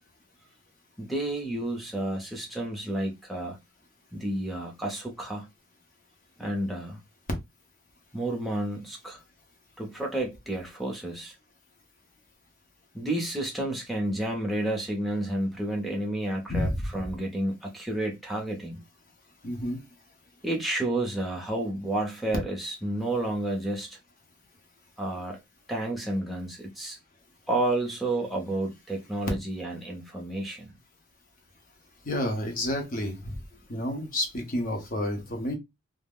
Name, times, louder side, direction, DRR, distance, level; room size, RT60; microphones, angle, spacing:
voice 1, 1.0-3.6 4.1-5.5 6.4-7.0 8.1-9.2 9.8-11.3 12.9-18.8 20.4-24.0 25.0-25.4 25.7-27.0 27.5-30.7, right 1 dB, ahead, 0.6 m, -31 dB
voice 2, 16.5-16.9 19.4-19.8 32.0-33.3 33.7-35.6, left 1 dB, 40° left, 0.7 m, -30 dB
2.3 x 2.0 x 3.4 m
head